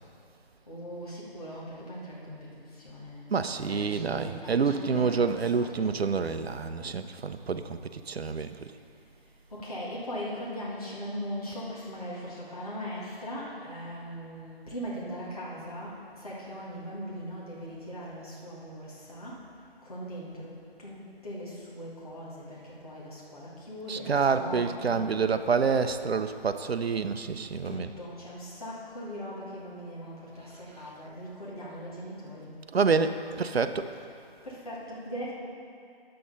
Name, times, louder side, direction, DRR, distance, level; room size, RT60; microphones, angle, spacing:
voice 1, 0.7-2.5 2.8-5.9 9.5-15.9 16.2-19.4 19.8-20.5 20.8-25.1 27.6-32.5 34.4-35.3, equal, 35° left, -7 dB, 1.7 m, -40 dB
voice 2, 3.3-8.7 23.9-27.9 32.7-33.9, right 5 dB, 75° right, 9 dB, 0.6 m, -28 dB
10.0 x 7.6 x 4.1 m, 2.5 s
figure-of-eight pair, 175°, 31 cm